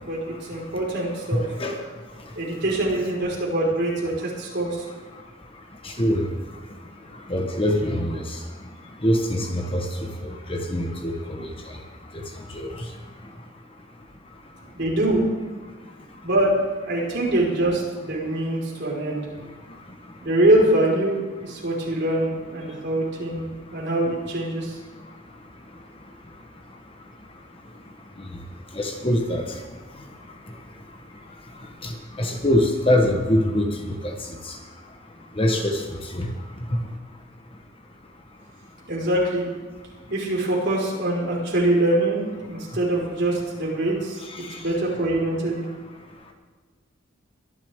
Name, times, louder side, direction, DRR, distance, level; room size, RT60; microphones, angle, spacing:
voice 1, 0.0-1.4 2.3-4.8 14.7-15.2 16.2-16.5 16.8-19.3 20.2-23.4 23.7-24.8 38.9-39.5 40.1-44.2 44.6-45.6, right 1 dB, 50° right, -3 dB, 4.8 m, -24 dB
voice 2, 1.3-1.8 5.8-6.3 7.3-8.2 9.0-9.9 10.2-11.5 12.5-12.7 28.7-29.4 31.8-31.9 32.2-34.1 34.5-34.6 35.4-35.8 36.1-36.3 44.3-44.6, left 1 dB, 25° left, 3 dB, 1.2 m, -23 dB
22.5 x 11.5 x 3.7 m, 1.3 s
head